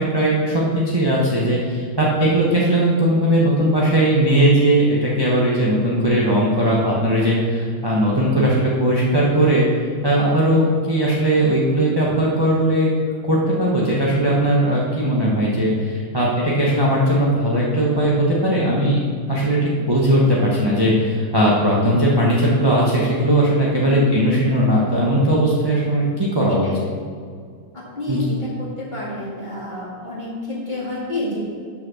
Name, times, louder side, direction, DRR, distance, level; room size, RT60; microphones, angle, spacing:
voice 1, 0.0-9.7 10.0-12.9 13.2-19.0 19.3-26.7 28.1-28.2, right 1 dB, 20° right, -6 dB, 0.9 m, -18 dB
voice 2, 23.7-24.0 26.6-26.8 27.7-31.4, left 2 dB, 30° left, -6 dB, 2.2 m, -29 dB
6.7 x 5.8 x 6.2 m, 2.1 s
omnidirectional pair, 1.7 m